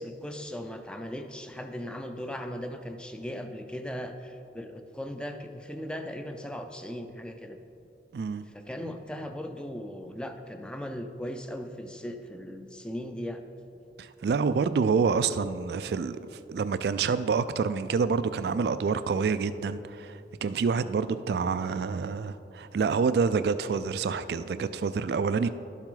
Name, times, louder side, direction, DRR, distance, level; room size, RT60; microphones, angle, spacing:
voice 1, 0.0-7.6 8.5-13.4, equal, 5° left, 6 dB, 0.4 m, -38 dB
voice 2, 8.1-8.4 14.0-16.2 16.5-25.5, right 5 dB, 65° right, 13 dB, 0.3 m, -27 dB
12.0 x 7.2 x 3.9 m, 2.7 s
head